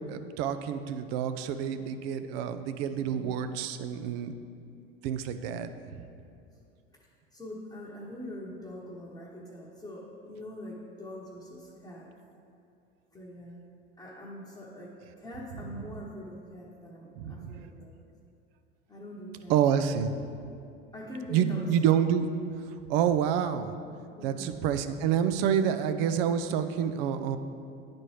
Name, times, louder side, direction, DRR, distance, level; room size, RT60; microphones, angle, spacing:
voice 1, 0.1-4.3 5.0-6.0 17.2-17.6 19.5-20.2 21.3-22.3 22.9-23.7 24.2-27.4, right 8 dB, 65° right, 10 dB, 0.5 m, -28 dB
voice 2, 2.9-3.3 4.4-4.6 7.3-12.1 13.1-13.6 14.0-18.0 18.9-19.6 20.9-21.7 24.2-24.6, left 1 dB, 10° left, -7 dB, 1.0 m, -43 dB
9.9 x 4.3 x 3.2 m, 2.4 s
hypercardioid pair, 90°, 31 cm